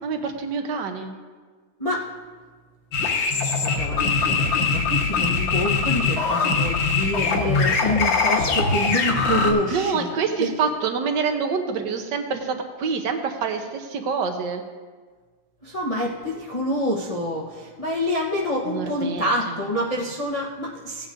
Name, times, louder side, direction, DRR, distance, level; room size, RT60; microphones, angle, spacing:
voice 1, 0.0-1.1 9.7-14.6 18.7-19.3, right 5 dB, 65° right, 5 dB, 1.4 m, -26 dB
sound 1, 2.9-9.5, left 4 dB, 65° left, 1.9 m, -22 dB
voice 2, 3.4-10.1 10.4-10.5 15.6-21.1, left 1 dB, 45° left, -3 dB, 0.4 m, -27 dB
16.5 x 8.9 x 2.5 m, 1.5 s
omnidirectional pair, 2.4 m